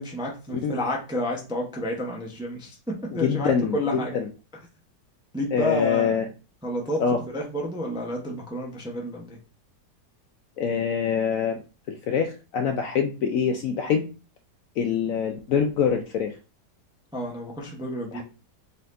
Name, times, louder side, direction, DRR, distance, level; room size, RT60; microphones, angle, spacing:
voice 1, 0.0-4.2 5.3-6.3 6.6-9.4 17.1-18.2, equal, 5° right, -1 dB, 0.5 m, -30 dB
voice 2, 3.2-4.3 5.5-6.2 7.0-7.2 10.6-11.6 11.9-14.1 14.8-16.4 18.1-18.2, left 7 dB, 70° left, 5 dB, 0.8 m, -25 dB
4.2 x 4.0 x 2.5 m, 0.33 s
omnidirectional pair, 1.8 m